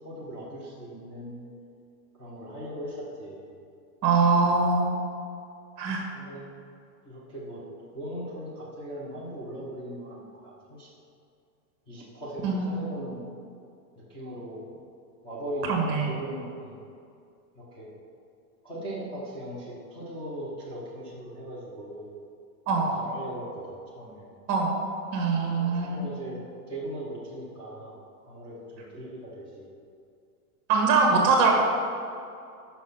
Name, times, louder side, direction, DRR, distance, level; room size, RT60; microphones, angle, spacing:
voice 1, 0.0-1.4 2.2-3.4 6.1-6.5 7.0-10.9 11.9-13.2 14.1-14.6 15.2-16.8 17.5-17.9 18.6-22.1 22.8-24.4 25.5-26.4 26.7-28.0 28.2-29.7, right 1 dB, 10° left, -8 dB, 0.9 m, -39 dB
voice 2, 4.0-4.9 5.8-6.0 12.4-12.8 15.7-16.1 22.7-23.0 24.5-24.8 25.1-26.0 30.7-31.5, right 4 dB, 30° right, 0 dB, 1.3 m, -23 dB
6.2 x 5.7 x 5.7 m, 2.4 s
supercardioid pair, 165°, 48 cm